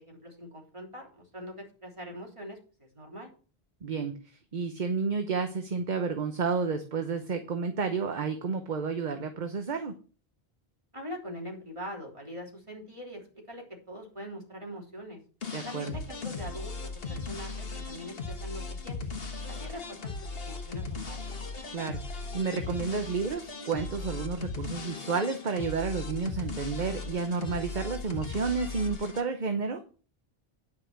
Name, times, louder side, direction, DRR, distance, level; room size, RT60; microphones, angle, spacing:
voice 1, 0.0-3.3 10.9-15.2 15.6-19.2 19.5-21.4, equal, 30° right, -1 dB, 3.5 m, -43 dB
voice 2, 3.8-4.2 4.5-9.9 15.5-16.0 21.7-29.8, right 5 dB, 50° right, 7 dB, 1.0 m, -31 dB
sound 1, 15.4-29.2, left 4 dB, 65° left, 1.5 m, -38 dB
10.0 x 5.9 x 6.0 m, 0.37 s
omnidirectional pair, 1.0 m